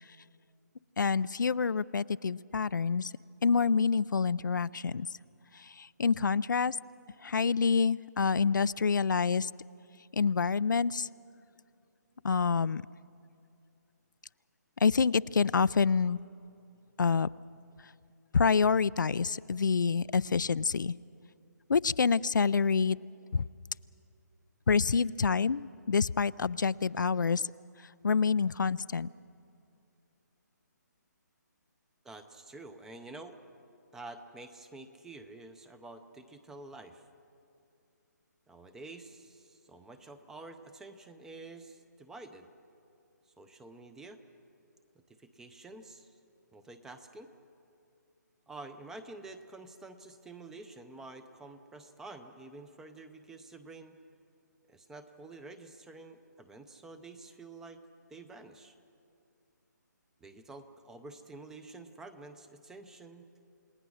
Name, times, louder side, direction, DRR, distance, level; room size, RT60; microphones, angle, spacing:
voice 1, 1.0-3.1 3.4-5.1 5.8-6.8 7.2-9.5 10.1-11.1 12.2-12.8 14.8-16.2 17.0-17.3 18.3-20.9 21.7-23.0 23.3-23.4 24.7-27.4 28.0-29.1, left 5 dB, 90° left, 17 dB, 0.4 m, -27 dB
voice 2, 32.0-33.4 33.9-37.0 38.5-42.5 43.3-44.2 45.1-46.2 46.5-47.3 48.5-54.0 54.7-57.8 58.1-58.8 60.2-63.3, right 2 dB, 5° right, 10 dB, 0.6 m, -49 dB
29.0 x 18.5 x 6.3 m, 2.5 s
hypercardioid pair, 160°, 10 cm